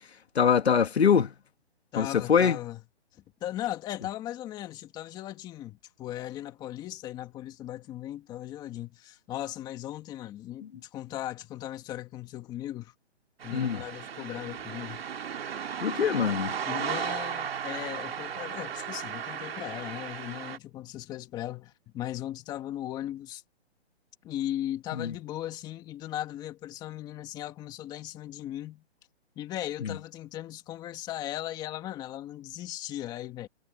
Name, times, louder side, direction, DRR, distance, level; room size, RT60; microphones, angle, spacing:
voice 1, 0.3-1.3 2.0-2.6 13.5-13.8 15.8-16.6 24.9-25.1 29.8-29.9, left 7 dB, 70° left, 2.6 m, -23 dB
voice 2, 1.9-2.8 3.4-12.9 13.4-15.0 16.7-23.4 24.2-28.8 29.4-33.5, left 13 dB, 10° left, 2.0 m, -37 dB
sound 1, 13.4-20.6, right 8 dB, 60° right, 3.0 m, -35 dB
hypercardioid pair, 165°, 33 cm